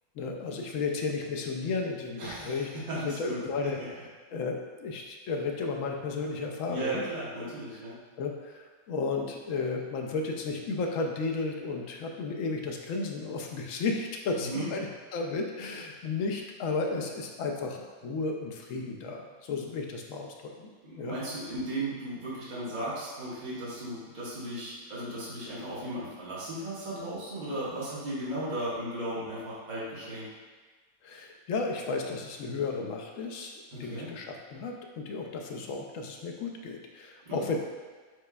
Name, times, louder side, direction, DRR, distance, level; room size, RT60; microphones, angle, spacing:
voice 1, 0.2-2.7 3.0-3.8 4.3-7.0 7.4-7.5 8.2-14.9 15.1-21.2 31.0-33.5 33.8-37.6, left 4 dB, 70° left, 2 dB, 0.9 m, -33 dB
voice 2, 2.2-3.9 6.7-8.0 14.4-14.7 20.9-30.3 33.7-34.1 37.2-37.4, right 1 dB, 35° right, -9 dB, 1.2 m, -36 dB
4.8 x 4.2 x 2.2 m, 1.4 s
omnidirectional pair, 1.5 m